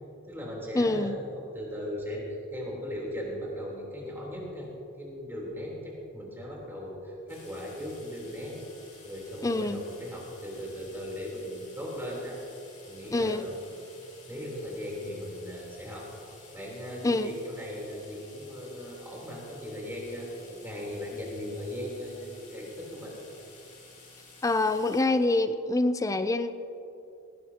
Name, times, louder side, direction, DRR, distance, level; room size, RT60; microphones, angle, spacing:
voice 1, 0.2-4.7 5.0-8.6 9.0-12.4 12.9-13.6 14.3-23.2, equal, 10° right, -4 dB, 3.6 m, -38 dB
voice 2, 0.7-1.2 9.4-9.8 13.1-13.5 17.0-17.3 24.4-26.5, left 2 dB, 15° left, 11 dB, 0.4 m, -26 dB
sound 1, 7.3-25.0, left 3 dB, 35° left, 3.8 m, -53 dB
19.0 x 16.5 x 2.9 m, 2.8 s
head